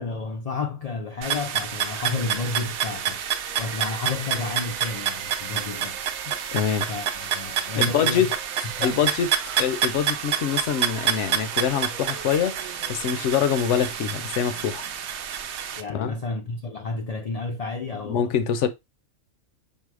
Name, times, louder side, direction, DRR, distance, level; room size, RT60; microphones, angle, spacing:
voice 1, 0.0-3.2 3.6-6.0 6.9-8.3 8.8-9.1 15.8-18.3, left 3 dB, 55° left, 0.4 m, -31 dB
sound 1, 1.2-15.8, right 9 dB, 65° right, 0.8 m, -28 dB
sound 2, 1.9-15.6, right 9 dB, 90° right, 1.0 m, -43 dB
voice 2, 6.5-6.9 7.7-8.3 8.8-9.3 9.6-12.6 12.9-14.9 15.9-16.1 18.0-18.7, left 8 dB, 70° left, 0.9 m, -24 dB
5.5 x 2.0 x 4.8 m
omnidirectional pair, 1.4 m